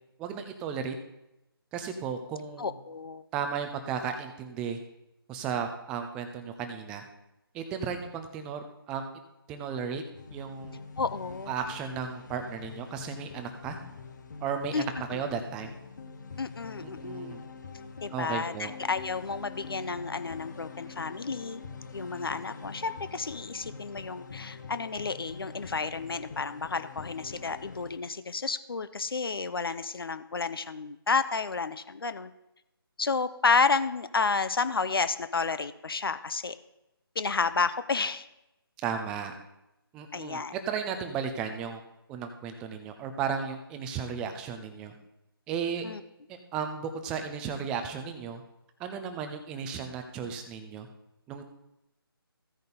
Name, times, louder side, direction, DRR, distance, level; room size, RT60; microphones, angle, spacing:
voice 1, 0.2-1.0 1.7-2.8 3.3-4.8 5.3-7.0 7.5-9.0 9.5-10.0 10.3-10.8 11.5-13.8 14.4-15.7 16.8-17.4 18.1-18.7 38.8-39.3 39.9-41.8 42.1-44.9 45.5-45.9 46.3-48.4 48.8-50.9 51.3-51.4, right 7 dB, 5° right, 6 dB, 0.4 m, -34 dB
voice 2, 2.6-3.2 11.0-11.5 14.7-14.8 15.1-15.2 16.4-17.4 18.0-21.6 21.9-32.3 33.0-36.6 37.2-38.3 40.1-40.5 45.8-46.0, left 4 dB, 70° left, 12 dB, 0.7 m, -31 dB
sound 1, 10.1-28.0, left 5 dB, 50° left, 1.1 m, -44 dB
15.0 x 5.2 x 4.0 m, 0.90 s
figure-of-eight pair, 155°, 13 cm